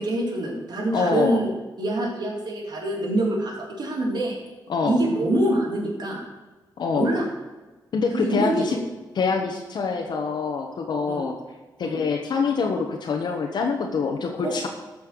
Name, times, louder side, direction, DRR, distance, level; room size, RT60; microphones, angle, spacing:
voice 1, 0.0-1.5 1.8-4.4 4.8-6.2 6.9-7.3 8.1-8.8 11.1-11.3 11.8-12.0 14.4-14.5, right 1 dB, 60° right, -2 dB, 3.8 m, -25 dB
voice 2, 0.9-1.4 4.7-5.0 6.8-7.1 7.9-8.8 9.1-11.3 11.8-14.7, left 5 dB, 70° left, 1 dB, 1.3 m, -25 dB
13.5 x 5.7 x 6.9 m, 1.2 s
wide cardioid pair, 115°, 8 cm